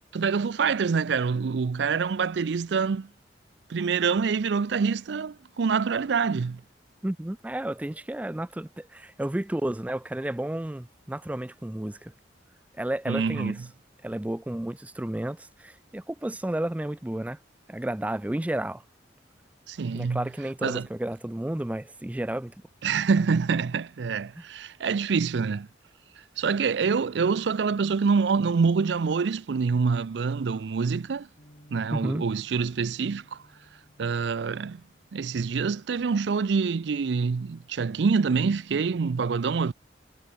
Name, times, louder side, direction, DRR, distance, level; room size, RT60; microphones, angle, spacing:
voice 1, 0.1-3.1 3.7-6.6 13.1-13.6 19.7-20.2 20.6-20.9 22.8-25.7 26.4-31.3 31.7-33.4 34.0-34.8 35.1-39.7, right 5 dB, 70° right, 0.4 m, -26 dB
voice 2, 7.0-12.1 12.7-13.6 14.0-17.4 17.7-18.8 19.9-22.5 24.4-24.5 31.9-32.2, right 1 dB, 10° right, 0.3 m, -32 dB
Bass guitar, 31.4-37.6, equal, 40° left, 5.3 m, -59 dB
head